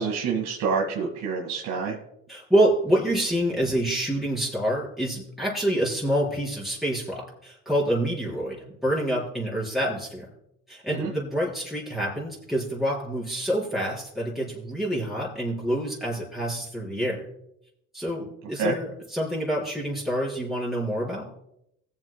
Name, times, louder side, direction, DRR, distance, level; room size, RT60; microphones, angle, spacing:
voice 1, 0.0-2.0 11.0-11.1 18.6-18.7, right 5 dB, 80° right, -2 dB, 2.0 m, -27 dB
voice 2, 2.3-10.3 10.7-17.2 17.9-21.3, right 1 dB, ahead, -5 dB, 4.2 m, -27 dB
20.5 x 7.6 x 2.2 m, 0.79 s
cardioid pair, 100°, 31 cm